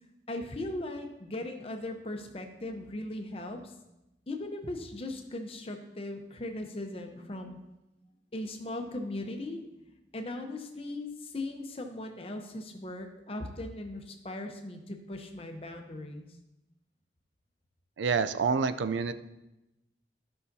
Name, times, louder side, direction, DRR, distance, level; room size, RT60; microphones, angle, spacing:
voice 1, 0.3-3.7 4.3-7.6 8.3-16.3, left 1 dB, 30° left, 4 dB, 0.8 m, -38 dB
voice 2, 18.0-19.1, right 5 dB, 85° right, 12 dB, 0.4 m, -27 dB
12.5 x 5.6 x 2.7 m, 0.94 s
head